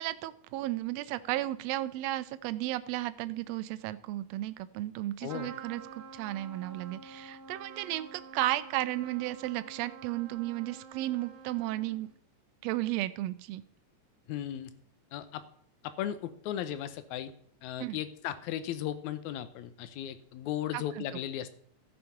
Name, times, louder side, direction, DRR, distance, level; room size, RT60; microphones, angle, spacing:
voice 1, 0.0-12.1 12.6-13.6 17.8-18.0 20.7-21.0, right 16 dB, 80° right, 13 dB, 1.6 m, -34 dB
Trumpet, 5.3-12.2, right 5 dB, 60° right, 1.7 m, -48 dB
voice 2, 14.3-14.7 15.1-15.4 15.8-17.3 17.6-21.5, left 11 dB, 80° left, 12 dB, 2.1 m, -36 dB
14.0 x 5.2 x 5.7 m, 0.63 s
omnidirectional pair, 3.4 m